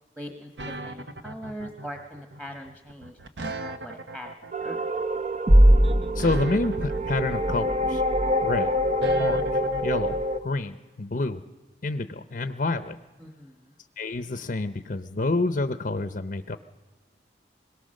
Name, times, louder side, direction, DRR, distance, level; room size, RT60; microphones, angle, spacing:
voice 1, 0.2-4.3 4.6-4.9 13.2-13.8, equal, 5° right, 4 dB, 1.2 m, -41 dB
sound 1, 0.6-10.2, right 2 dB, 90° right, 1.1 m, -38 dB
sound 2, 4.5-10.4, equal, 40° right, 0.8 m, -22 dB
voice 2, 6.1-8.0 8.4-8.7 9.2-11.4 11.8-13.0 14.0-16.6, left 2 dB, 50° left, 10 dB, 0.7 m, -28 dB
26.5 x 22.0 x 6.5 m, 1.3 s
head